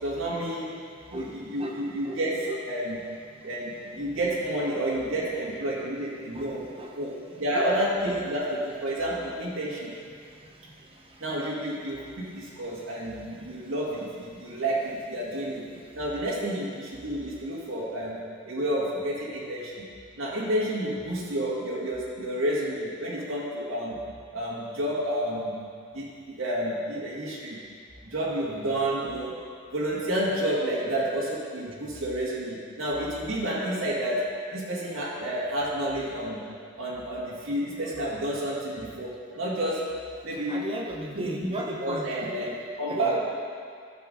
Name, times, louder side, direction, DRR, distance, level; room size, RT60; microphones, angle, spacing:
voice 1, 0.0-0.8 1.1-3.0 3.4-6.6 7.0-9.9 11.2-12.0 12.3-15.6 15.9-18.2 18.4-19.8 20.2-24.0 24.3-25.5 25.9-27.6 28.0-29.3 29.7-34.2 34.5-36.4 36.8-39.8 40.2-40.6 41.1-41.5 41.8-43.2, right 1 dB, 80° right, -7 dB, 2.0 m, -30 dB
voice 2, 1.1-2.2 2.5-2.6 6.3-6.9 7.5-7.7 8.0-8.1 40.5-42.5 42.9-43.2, right 1 dB, 30° right, 0 dB, 0.8 m, -35 dB
13.5 x 7.0 x 3.8 m, 2.2 s
head